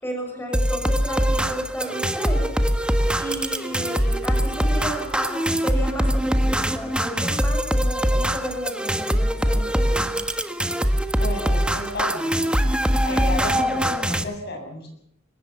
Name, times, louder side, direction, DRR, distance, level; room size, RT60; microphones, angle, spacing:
voice 1, 0.0-2.5 3.2-10.1, equal, 10° left, 1 dB, 6.4 m, -33 dB
sound 1, 0.5-14.2, equal, 5° right, 1.5 m, -22 dB
voice 2, 11.2-12.5 13.0-14.9, left 1 dB, 55° left, 3 dB, 7.4 m, -31 dB
23.5 x 19.5 x 7.0 m, 0.69 s
head